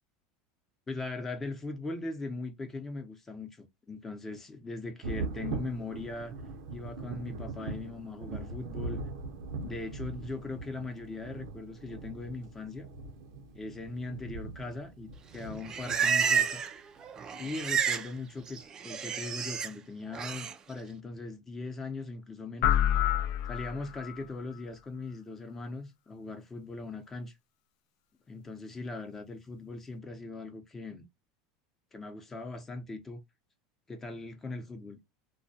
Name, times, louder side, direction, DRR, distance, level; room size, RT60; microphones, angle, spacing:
voice 1, 0.9-6.3 6.7-9.0 9.6-12.9 13.5-16.6 17.4-22.7 23.5-27.3 28.3-31.1 31.9-33.2 33.9-35.0, left 3 dB, 15° left, 0.6 m, -40 dB
Thunder, 5.0-16.4 17.7-17.8 18.4-18.5, right 3 dB, 75° right, 0.6 m, -41 dB
Livestock farm animals working animals, 15.4-16.8 17.0-18.1 18.4-19.7 20.1-20.5, right 7 dB, 30° right, 0.3 m, -30 dB
sound 1, 22.6-24.2, left 11 dB, 60° left, 0.4 m, -27 dB
2.2 x 2.1 x 2.6 m
supercardioid pair, 125°, 2 cm